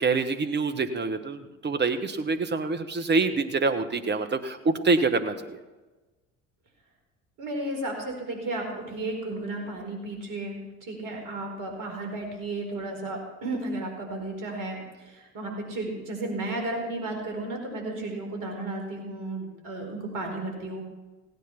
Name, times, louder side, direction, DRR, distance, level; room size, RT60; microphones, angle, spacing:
voice 1, 0.0-5.6, right 4 dB, 25° right, 9 dB, 1.4 m, -26 dB
voice 2, 7.4-20.8, right 2 dB, 55° right, 2 dB, 4.6 m, -33 dB
16.5 x 9.5 x 5.9 m, 1.2 s
figure-of-eight pair, 60°, 38 cm